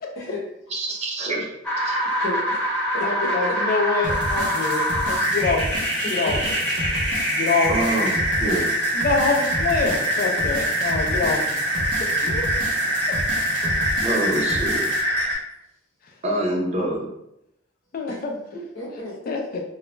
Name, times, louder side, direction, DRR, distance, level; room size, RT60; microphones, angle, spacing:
voice 1, 0.7-1.5 1.8-1.9 7.7-8.1 8.4-8.7 14.0-14.8 16.2-17.1, right 1 dB, 35° right, -2 dB, 0.6 m, -25 dB
sound 1, 1.6-15.3, equal, 10° left, 0.8 m, -24 dB
voice 2, 2.0-2.6 2.9-3.3 6.0-6.5 12.0-12.1 18.1-18.2 18.5-19.2, left 2 dB, 90° left, -3 dB, 0.8 m, -33 dB
voice 3, 3.0-5.6 6.1-6.4 7.3-7.7 8.9-11.6 12.2-12.4 13.1-13.2 17.9-18.3 19.3-19.6, left 4 dB, 50° left, 2 dB, 0.4 m, -25 dB
sound 2, 4.0-15.0, equal, 85° right, 0.7 m, -31 dB
2.3 x 2.1 x 3.0 m, 0.82 s
head